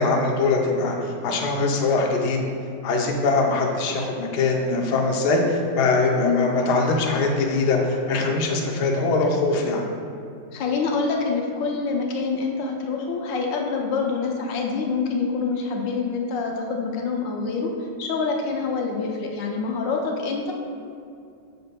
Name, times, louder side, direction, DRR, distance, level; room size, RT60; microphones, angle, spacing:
voice 1, 0.0-2.4 2.8-9.9, left 3 dB, 70° left, 0 dB, 1.3 m, -22 dB
voice 2, 10.5-17.7 18.0-20.5, left 4 dB, 85° left, 1 dB, 1.4 m, -26 dB
6.8 x 6.6 x 2.2 m, 2.4 s
omnidirectional pair, 2.0 m